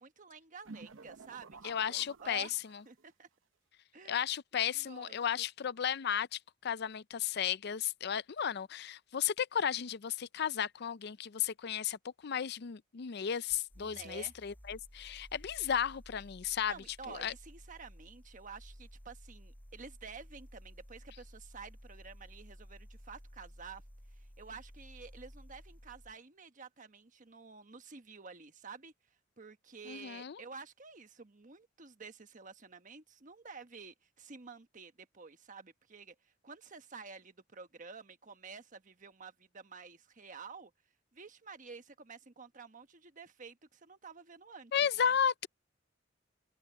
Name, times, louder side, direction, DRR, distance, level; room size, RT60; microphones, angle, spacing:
voice 1, 0.0-2.5 2.8-3.3 3.9-4.3 4.6-5.2 13.8-14.3 16.6-23.8 24.2-28.9 29.4-40.7 41.1-44.7 45.0-45.1, right 5 dB, 40° right, 1.2 m, -50 dB
sound 1, 0.6-3.0, right 3 dB, 80° right, 0.9 m, -52 dB
voice 2, 1.6-2.5 4.1-16.7 17.1-17.3 29.9-30.4 44.7-45.5, left 8 dB, 55° left, 0.5 m, -34 dB
sound 2, 13.5-26.2, equal, 10° left, 7.8 m, -54 dB
open air
head